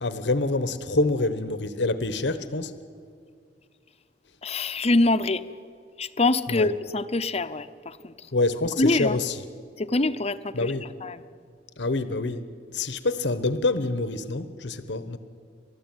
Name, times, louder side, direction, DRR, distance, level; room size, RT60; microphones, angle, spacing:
voice 1, 0.0-2.7 6.5-6.7 8.3-9.4 10.5-10.9 11.8-15.2, left 2 dB, 80° left, 12 dB, 1.1 m, -26 dB
voice 2, 4.4-5.4 6.0-8.3 8.8-9.2 9.8-10.7 11.0-11.2, left 2 dB, 35° left, 11 dB, 0.8 m, -24 dB
29.5 x 13.5 x 9.1 m, 2.2 s
head